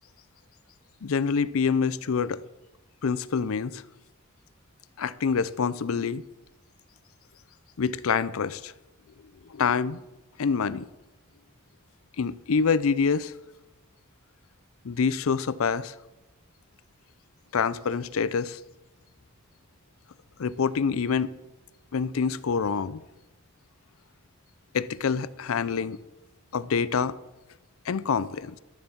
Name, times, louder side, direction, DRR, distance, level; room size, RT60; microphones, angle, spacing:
voice 1, 1.0-2.4 3.0-3.8 5.0-6.2 7.8-8.7 9.5-10.0 10.4-10.9 12.2-13.3 14.8-15.9 17.5-18.6 20.4-21.3 21.9-23.0 24.7-26.0 26.5-27.1 27.9-28.6, left 5 dB, 85° left, 0.5 m, -26 dB
12.5 x 7.0 x 7.1 m
head